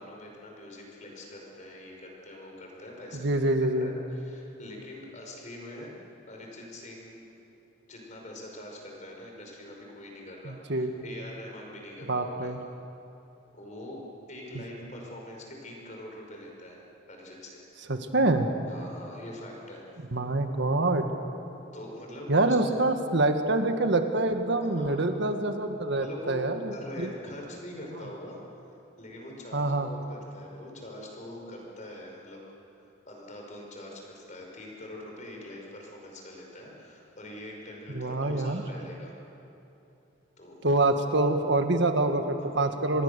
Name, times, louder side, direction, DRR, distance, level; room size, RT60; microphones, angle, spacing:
voice 1, 0.0-5.9 6.3-7.2 7.9-12.5 13.5-14.0 14.3-16.8 17.1-17.7 18.7-19.8 21.7-22.6 24.6-25.3 26.0-28.4 29.0-32.4 33.1-39.1 40.4-40.6 42.3-42.7 42.9-43.0, left 1 dB, 40° left, 0 dB, 5.1 m, -44 dB
voice 2, 3.1-3.9 10.4-10.9 12.1-12.6 17.9-18.5 20.1-21.1 22.3-27.1 29.5-29.9 37.9-38.6 40.6-43.0, right 2 dB, 60° right, 6 dB, 1.6 m, -26 dB
26.5 x 21.0 x 6.8 m, 2.9 s
head